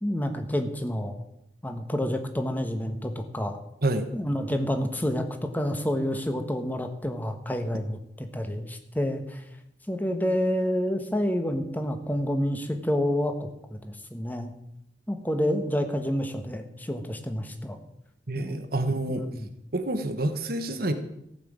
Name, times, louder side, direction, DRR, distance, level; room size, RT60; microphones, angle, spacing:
voice 1, 0.0-1.2 1.6-3.6 4.1-9.4 9.9-14.5 15.1-17.8 18.3-18.6 19.1-19.5, equal, 10° left, 6 dB, 1.3 m, -29 dB
voice 2, 18.3-19.3 19.7-20.9, right 2 dB, 55° right, 8 dB, 1.4 m, -27 dB
15.0 x 6.0 x 8.7 m, 0.82 s
head